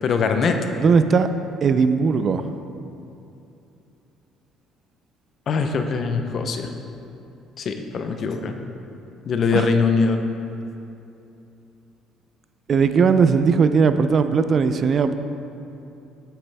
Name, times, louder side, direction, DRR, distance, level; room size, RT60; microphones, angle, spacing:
voice 1, 0.0-0.6 5.5-6.7 7.6-8.6 9.2-10.2, left 5 dB, 45° left, 6 dB, 0.7 m, -22 dB
voice 2, 0.8-1.3 1.6-2.5 9.5-9.7 12.7-15.2, right 5 dB, 40° right, 10 dB, 0.4 m, -18 dB
9.3 x 7.4 x 3.4 m, 2.8 s
cardioid pair, 120°, 0 cm